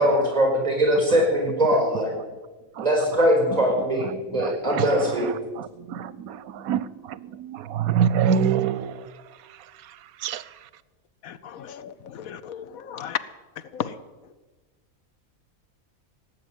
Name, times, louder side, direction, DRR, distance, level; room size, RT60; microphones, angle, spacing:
voice 1, 0.0-2.1 2.8-5.4, equal, 25° right, 0 dB, 5.3 m, -21 dB
voice 2, 1.9-2.3 2.7-2.9 3.5-3.6 4.0-10.7, right 8 dB, 90° right, 17 dB, 1.1 m, -28 dB
voice 3, 11.2-13.2 13.7-13.9, left 9 dB, 80° left, 13 dB, 1.2 m, -34 dB
17.5 x 7.2 x 9.1 m, 1.3 s
omnidirectional pair, 1.5 m